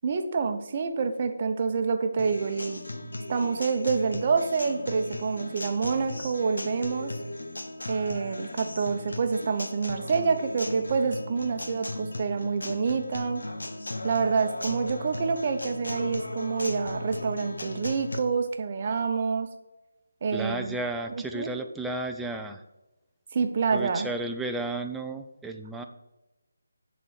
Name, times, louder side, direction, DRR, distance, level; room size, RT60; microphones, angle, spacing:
voice 1, 0.0-2.8 3.3-7.1 7.9-13.4 14.0-19.5 20.2-20.8 21.1-21.5 23.3-24.1, right 5 dB, 35° right, 6 dB, 0.8 m, -27 dB
Acoustic guitar, 2.2-18.2, left 1 dB, 85° left, 0.9 m, -37 dB
voice 2, 20.3-22.6 23.7-25.8, right 2 dB, 5° right, 4 dB, 0.4 m, -33 dB
7.6 x 4.1 x 6.5 m, 1.0 s
figure-of-eight pair, 165°, 0 cm